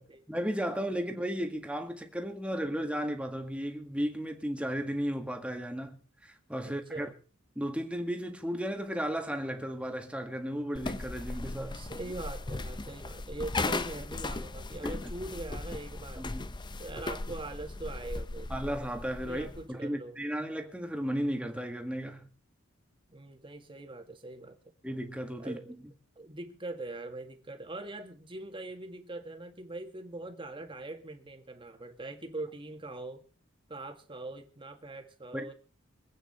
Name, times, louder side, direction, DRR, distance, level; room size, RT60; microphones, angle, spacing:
voice 1, 0.3-7.1 7.6-11.8 14.8-15.0 16.2-16.4 18.5-22.3 24.8-25.6 35.3-35.5, equal, 5° right, 1.8 m, -34 dB
voice 2, 6.6-7.1 11.7-16.3 16.8-18.5 19.3-20.2 23.1-24.6 25.4-25.7 26.2-33.2 33.7-35.5, right 2 dB, 25° right, 1.9 m, -42 dB
sound 1, 10.7-19.7, left 2 dB, 20° left, 0.6 m, -37 dB
25.0 x 8.9 x 4.3 m
head